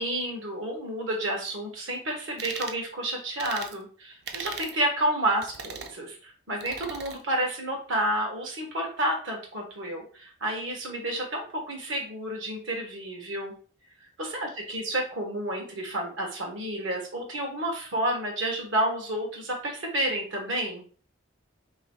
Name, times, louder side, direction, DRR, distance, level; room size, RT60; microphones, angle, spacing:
voice 1, 0.0-13.5 14.2-20.8, right 1 dB, 80° right, 1 dB, 1.4 m, -30 dB
sound 1, 2.4-2.8 3.4-3.7 4.3-4.8 5.4-5.9 6.6-7.2, right 6 dB, 55° right, 0.5 m, -38 dB
3.1 x 3.1 x 4.5 m, 0.41 s
head